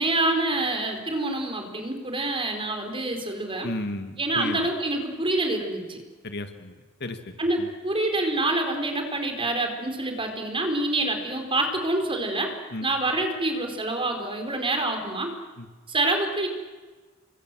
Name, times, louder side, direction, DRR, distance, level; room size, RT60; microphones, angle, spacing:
voice 1, 0.0-3.7 4.2-6.0 7.4-12.5 12.8-15.3 15.9-16.5, right 2 dB, 25° right, 5 dB, 4.7 m, -26 dB
voice 2, 3.6-4.6 6.2-6.7 7.0-7.7 12.7-12.9 15.6-15.7, left 2 dB, 55° left, 7 dB, 2.2 m, -34 dB
29.5 x 24.5 x 7.8 m, 1.3 s
head